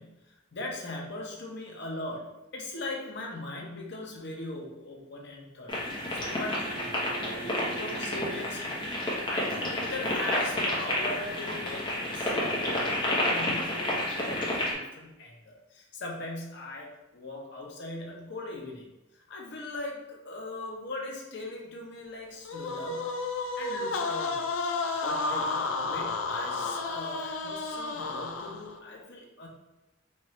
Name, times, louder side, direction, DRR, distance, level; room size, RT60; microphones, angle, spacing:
voice 1, 0.0-18.9 19.1-23.2 23.6-24.4 25.0-29.5, left 2 dB, 60° left, -1 dB, 0.8 m, -40 dB
sound 1, 5.7-14.7, left 1 dB, 25° left, 0.9 m, -30 dB
sound 2, 6.2-8.6 11.2-11.3, right 6 dB, 15° right, 0.5 m, -45 dB
sound 3, 22.4-28.8, left 3 dB, 90° left, 0.4 m, -32 dB
4.3 x 2.4 x 3.1 m, 1.0 s
head